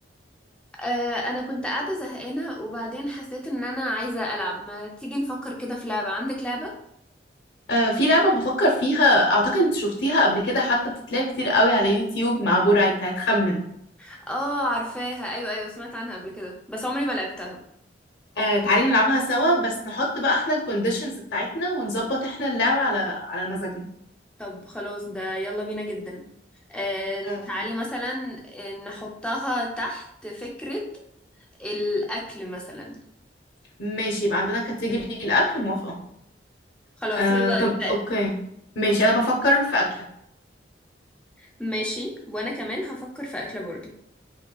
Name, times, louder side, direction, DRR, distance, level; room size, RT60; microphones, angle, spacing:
voice 1, 0.8-6.7 14.0-17.6 24.4-26.2 26.7-30.8 31.6-33.0 37.0-37.9 41.4-43.9, equal, 5° left, -1 dB, 0.6 m, -30 dB
voice 2, 7.7-13.6 18.4-23.9 27.2-27.4 33.8-36.0 37.1-38.3 38.8-39.9, left 1 dB, 70° left, -1 dB, 0.7 m, -22 dB
5.1 x 2.2 x 2.3 m, 0.76 s
head